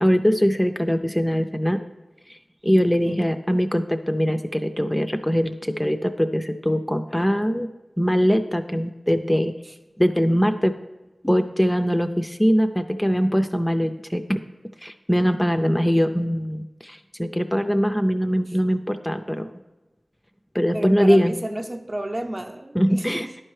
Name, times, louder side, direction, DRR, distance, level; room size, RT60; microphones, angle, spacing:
voice 1, 0.0-1.8 2.3-2.4 2.6-7.7 8.0-9.5 10.0-10.7 11.2-14.4 14.8-19.5 20.5-21.3 22.8-23.3, equal, 10° left, 7 dB, 0.4 m, -22 dB
voice 2, 20.7-23.4, right 1 dB, 40° right, 4 dB, 0.6 m, -32 dB
11.0 x 4.4 x 3.2 m, 1.1 s
cardioid pair, 40°, 0 cm